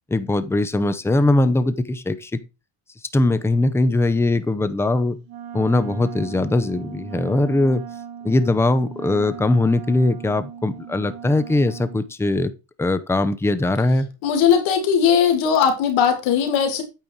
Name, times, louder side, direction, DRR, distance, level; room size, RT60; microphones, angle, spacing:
voice 1, 0.1-2.4 3.1-5.2 5.5-7.8 8.2-12.5 12.8-14.1, left 2 dB, 5° left, 0.6 m, -20 dB
Wind instrument woodwind instrument, 5.3-12.1, right 8 dB, 80° right, 2.0 m, -37 dB
voice 2, 14.2-16.8, left 7 dB, 75° left, 2.8 m, -18 dB
8.7 x 5.4 x 4.6 m
cardioid pair, 125°, 46 cm